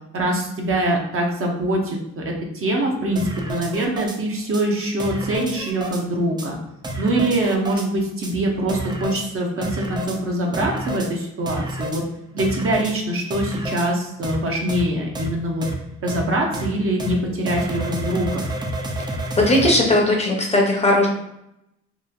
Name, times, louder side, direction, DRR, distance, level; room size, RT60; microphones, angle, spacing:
voice 1, 0.1-6.6 7.0-12.0 12.3-15.7 16.0-18.4, right 1 dB, 45° right, 0 dB, 0.7 m, -23 dB
sound 1, 3.2-4.2 4.5-4.6 5.0-6.0 6.4-6.5 6.8-7.9 8.2-8.3 8.7-9.3 9.6-10.2 10.5-11.1 11.5-12.0 12.4-12.9 13.3-13.9 14.2-14.4 14.7-14.8 15.2-15.3 15.6-15.7 16.1-16.2 16.5-16.7 17.0-17.1 17.5-19.8, right 1 dB, 15° right, 0.4 m, -29 dB
voice 2, 19.4-21.1, left 1 dB, 20° left, 0 dB, 0.7 m, -17 dB
3.0 x 2.4 x 2.3 m, 0.83 s
cardioid pair, 90°, 30 cm